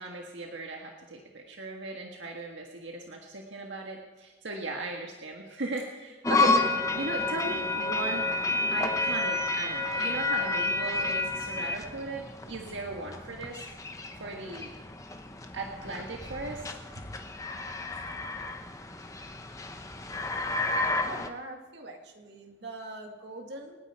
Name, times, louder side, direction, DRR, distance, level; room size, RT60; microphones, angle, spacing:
voice 1, 0.0-8.3 8.7-13.7 14.2-14.7 15.5-16.7 16.9-17.1, right 2 dB, 80° right, 0 dB, 1.7 m, -37 dB
sound 1, 6.2-21.3, left 3 dB, 15° left, 0.9 m, -31 dB
voice 2, 21.0-23.8, right 2 dB, 65° right, 2 dB, 2.2 m, -43 dB
27.5 x 9.7 x 4.6 m, 1.2 s
head